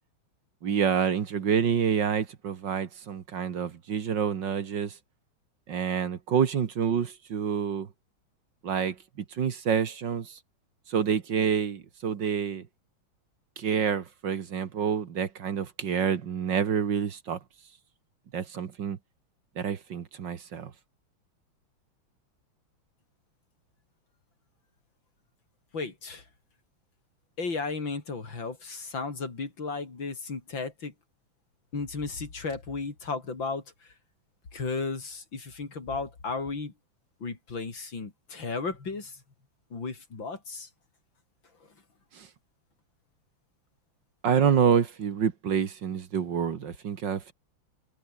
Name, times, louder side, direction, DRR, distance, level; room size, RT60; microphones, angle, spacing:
voice 1, 0.6-4.9 5.7-7.9 8.6-9.0 9.4-10.4 10.9-12.6 13.6-17.4 18.3-19.0 19.6-20.7 44.2-47.3, right 7 dB, 60° right, 2.0 m, -27 dB
voice 2, 25.7-26.2 27.4-30.9 31.7-33.6 34.5-36.7 37.2-39.2 39.7-40.7, left 4 dB, 60° left, 4.6 m, -34 dB
omnidirectional pair, 2.4 m